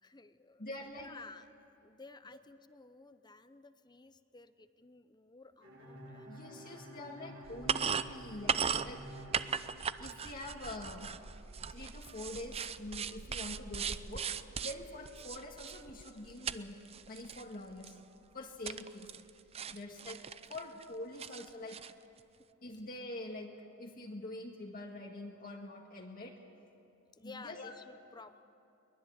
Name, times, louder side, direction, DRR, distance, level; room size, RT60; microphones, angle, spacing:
voice 1, 0.0-0.6 1.0-1.5 1.8-6.6 27.1-28.4, left 3 dB, 20° left, 11 dB, 0.8 m, -54 dB
voice 2, 0.6-1.1 6.3-9.1 10.0-11.1 11.7-14.3 14.6-16.8 17.1-18.0 18.3-19.1 19.7-20.2 20.5-21.8 22.6-26.4 27.2-27.7, left 2 dB, 45° left, 0 dB, 1.9 m, -45 dB
Bowed string instrument, 5.6-10.4, equal, 70° right, 4.8 m, -50 dB
sound 1, 7.4-16.6 16.8-17.4 17.8-17.9 18.6-19.3 19.5-20.8 21.2-21.9, right 6 dB, 30° right, 0.5 m, -38 dB
23.0 x 20.0 x 8.9 m, 2.9 s
head